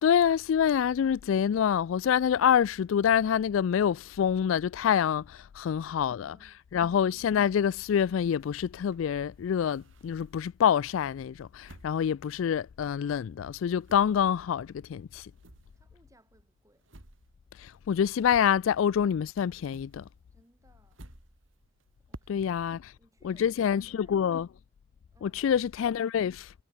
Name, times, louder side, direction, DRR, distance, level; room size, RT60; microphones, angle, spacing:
voice 1, 0.0-6.4 6.7-15.3 17.6-20.0 22.3-22.8 23.2-24.5 25.2-26.5, left 8 dB, 75° left, 0.3 m, -26 dB
voice 2, 5.7-7.1 15.7-16.9 20.3-21.0 22.0-24.2 25.1-25.6, right 1 dB, 15° right, 5.7 m, -66 dB
sound 1, 8.4-10.5 11.0-13.1 13.4-19.1 19.3-22.7, right 1 dB, 70° right, 4.0 m, -55 dB
head